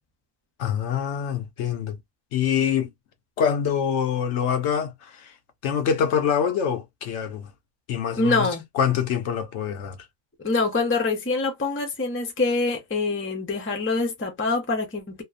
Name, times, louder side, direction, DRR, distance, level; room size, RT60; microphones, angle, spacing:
voice 1, 0.6-2.0 2.3-2.9 3.4-5.3 5.6-7.5 7.9-8.5 8.7-10.0, left 8 dB, 65° left, 0.8 m, -25 dB
voice 2, 8.2-8.6 10.4-15.2, left 3 dB, 15° left, 0.4 m, -25 dB
2.8 x 2.0 x 2.4 m
omnidirectional pair, 1.4 m